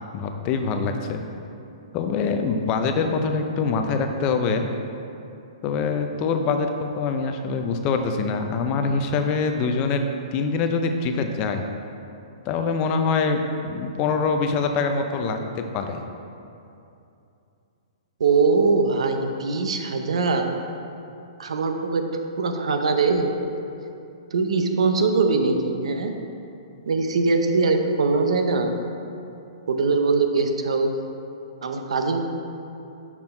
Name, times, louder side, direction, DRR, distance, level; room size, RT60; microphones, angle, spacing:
voice 1, 0.1-1.2 1.9-4.7 5.6-10.0 10.3-11.7 12.5-15.4 15.7-16.0, left 4 dB, 25° left, 5 dB, 0.4 m, -24 dB
voice 2, 18.2-20.4 21.4-22.0 22.4-23.3 24.3-26.1 26.9-28.7 29.7-30.9 31.6-32.2, right 4 dB, 80° right, 5 dB, 0.7 m, -22 dB
6.0 x 5.8 x 4.3 m, 2.7 s
hypercardioid pair, 160°, 3 cm